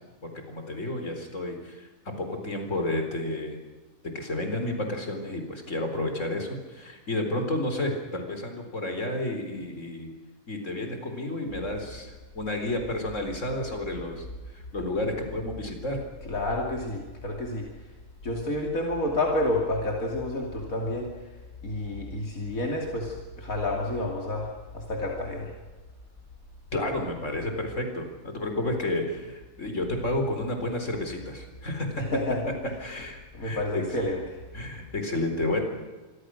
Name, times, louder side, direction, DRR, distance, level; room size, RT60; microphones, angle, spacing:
voice 1, 0.2-1.9 2.2-3.6 4.1-10.1 10.5-14.3 14.5-16.0 26.7-32.0 32.8-33.8 34.5-35.6, left 1 dB, 60° left, 5 dB, 4.5 m, -31 dB
voice 2, 16.2-17.7 18.2-21.1 21.6-25.5 32.0-32.4 33.3-34.4, left 1 dB, 80° left, 0 dB, 3.3 m, -29 dB
27.0 x 23.5 x 6.4 m, 1.3 s
omnidirectional pair, 1.4 m